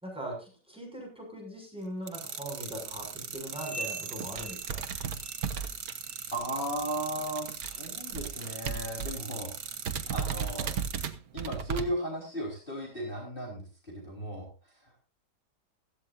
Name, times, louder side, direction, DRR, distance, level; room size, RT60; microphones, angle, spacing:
voice 1, 0.0-4.8, right 1 dB, 5° right, 0 dB, 6.5 m, -40 dB
sound 1, 2.1-11.1, right 6 dB, 85° right, 2.5 m, -40 dB
sound 2, 3.0-3.3 3.8-3.9 4.0-6.4 6.7-9.3 9.6-9.7 9.9-11.9, right 7 dB, 60° right, 1.5 m, -35 dB
sound 3, 3.5-5.7 6.0-6.4 6.8-7.1 7.7-7.8 8.5-8.6 9.4-9.5, right 3 dB, 50° left, 4.6 m, -43 dB
voice 2, 6.3-10.7 11.3-14.5, right 1 dB, 30° left, -2 dB, 4.7 m, -36 dB
16.0 x 15.0 x 2.6 m, 0.31 s
omnidirectional pair, 1.9 m